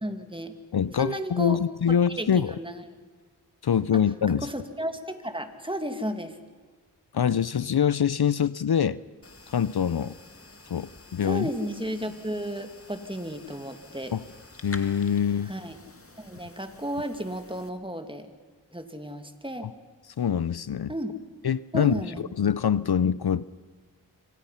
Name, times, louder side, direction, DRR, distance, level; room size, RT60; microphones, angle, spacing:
voice 1, 0.0-0.5 1.0-1.6 2.2-2.9 3.9-4.0 4.3-6.4 11.2-14.1 15.5-15.8 16.2-18.3 18.7-19.7 20.9-21.1 21.7-22.2, equal, 10° right, 7 dB, 2.3 m, -33 dB
voice 2, 0.7-2.5 3.6-4.5 7.1-9.0 9.5-10.1 10.7-11.5 14.1-14.2 14.6-15.5 20.2-20.9 21.4-22.0 22.4-23.4, left 8 dB, 70° left, 18 dB, 0.6 m, -24 dB
sound 1, 9.2-17.7, left 3 dB, 35° left, 2.1 m, -49 dB
26.5 x 25.5 x 5.7 m, 1.4 s
wide cardioid pair, 50°, 40 cm